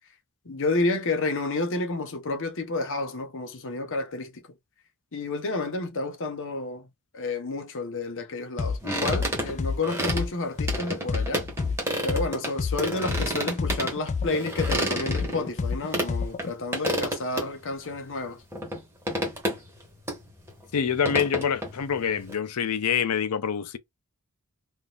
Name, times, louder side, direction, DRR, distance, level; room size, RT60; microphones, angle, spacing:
voice 1, 0.4-4.4 5.1-6.9 7.1-11.5 12.0-18.4, left 3 dB, 60° left, 0.9 m, -30 dB
sound 1, 8.6-8.8 9.1-12.8 13.1-16.5, left 4 dB, 30° left, 0.3 m, -28 dB
sound 2, 8.8-10.3 10.7-12.5 12.8-16.1 16.4-16.5 16.7-17.5 17.9-18.0 18.5-18.8 19.1-19.8 20.1-20.2 20.5-22.3, right 1 dB, 10° right, 1.2 m, -30 dB
voice 2, 20.7-23.8, left 7 dB, 85° left, 0.5 m, -26 dB
3.7 x 2.5 x 2.4 m
head